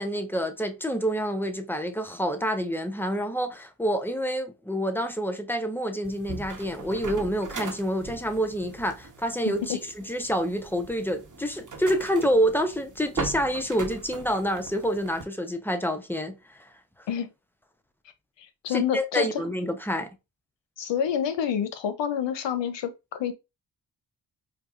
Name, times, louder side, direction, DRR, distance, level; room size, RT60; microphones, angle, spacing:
voice 1, 0.0-16.3 16.6-16.7 18.7-20.1, equal, 5° left, 0.7 m, -27 dB
sound 1, 6.0-15.2, right 4 dB, 45° right, 1.0 m, -40 dB
voice 2, 18.4-19.4 20.8-23.3, left 8 dB, 75° left, 0.7 m, -28 dB
4.6 x 2.2 x 2.5 m
cardioid pair, 55°, 44 cm